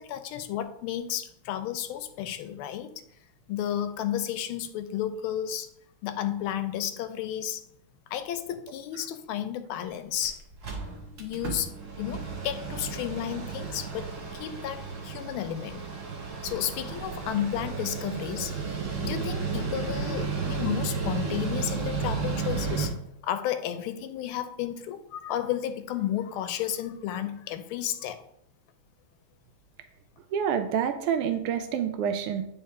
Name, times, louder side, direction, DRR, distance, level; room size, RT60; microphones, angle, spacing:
voice 1, 0.0-3.0 3.5-5.7 6.0-7.6 8.1-10.4 11.2-11.7 12.0-15.8 16.4-18.5 19.0-22.9 23.2-28.2, left 11 dB, 80° left, 10 dB, 1.4 m, -32 dB
Mechanical fan, 9.9-10.0 10.2-10.3 10.5-22.9, right 5 dB, 45° right, 1.1 m, -33 dB
voice 2, 30.3-32.4, right 8 dB, 85° right, 8 dB, 1.5 m, -27 dB
9.6 x 3.3 x 3.6 m, 0.76 s
omnidirectional pair, 2.4 m